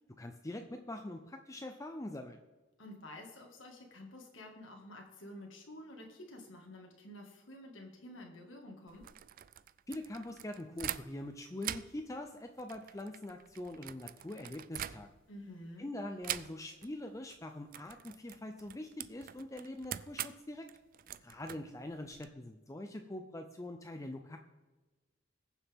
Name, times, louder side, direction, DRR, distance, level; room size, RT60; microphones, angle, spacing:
voice 1, 0.2-2.4 9.9-15.1 15.8-20.7 21.2-24.4, left 1 dB, 15° left, 5 dB, 0.5 m, -43 dB
voice 2, 2.8-9.1 15.3-15.9, left 1 dB, 75° left, 1 dB, 1.9 m, -50 dB
sound 1, 8.9-11.3 11.6-15.4 16.2-16.9 17.2-17.4 17.7-22.3, right 11 dB, 45° right, 0.4 m, -44 dB
21.0 x 7.1 x 3.6 m, 1.2 s
head